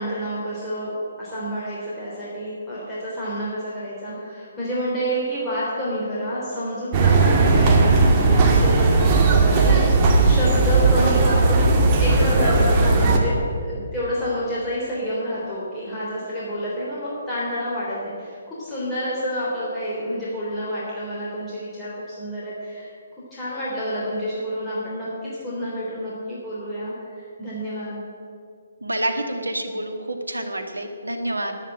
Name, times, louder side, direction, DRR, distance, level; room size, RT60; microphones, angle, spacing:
voice 1, 0.0-13.3 13.6-22.9 23.3-28.0, equal, 10° left, -9 dB, 3.3 m, -29 dB
sound 1, 6.9-13.2, right 3 dB, 25° right, 1.8 m, -17 dB
voice 2, 28.8-31.5, right 1 dB, 85° right, 5 dB, 1.7 m, -28 dB
10.5 x 9.5 x 8.8 m, 2.4 s
figure-of-eight pair, 140°, 0 cm